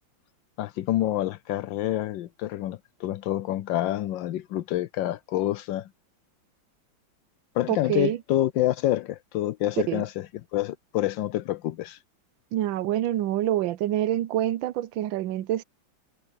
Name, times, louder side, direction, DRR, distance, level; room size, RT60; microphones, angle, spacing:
voice 1, 0.6-5.9 7.5-10.3 10.5-12.0, left 14 dB, 80° left, 1.3 m, -27 dB
voice 2, 7.7-8.2 9.9-10.0 12.5-15.6, right 13 dB, 80° right, 1.4 m, -26 dB
omnidirectional pair, 2.1 m